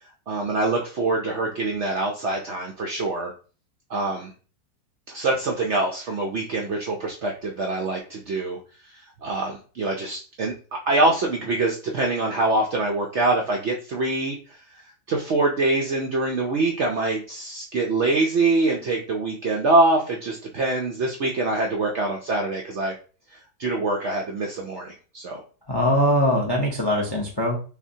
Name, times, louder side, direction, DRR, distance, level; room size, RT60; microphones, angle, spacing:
voice 1, 0.3-3.3 3.9-4.3 5.1-8.6 8.8-10.5 10.9-22.9 23.3-25.4, right 2 dB, 70° right, 1 dB, 0.6 m, -24 dB
voice 2, 25.7-27.6, equal, 40° left, -1 dB, 0.3 m, -22 dB
5.7 x 2.2 x 2.7 m, 0.38 s
omnidirectional pair, 1.8 m